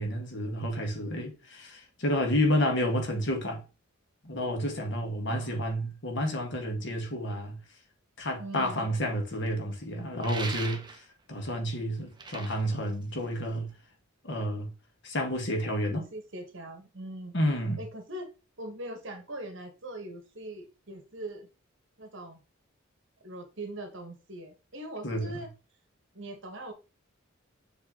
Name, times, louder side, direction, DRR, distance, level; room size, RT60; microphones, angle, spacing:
voice 1, 0.0-3.6 4.2-7.6 8.2-11.0 11.3-13.7 14.2-14.7 15.0-16.1 17.3-17.8 25.0-25.4, equal, 60° left, 1.7 m, -30 dB
voice 2, 5.3-5.6 8.4-9.1 15.9-17.3 17.8-18.3 18.6-21.5 22.0-22.4 23.2-25.5 26.1-26.7, right 1 dB, 60° right, 1.5 m, -41 dB
sound 1, 10.2-11.2 12.0-13.7, right 4 dB, 20° right, 0.8 m, -40 dB
7.2 x 3.3 x 3.8 m
head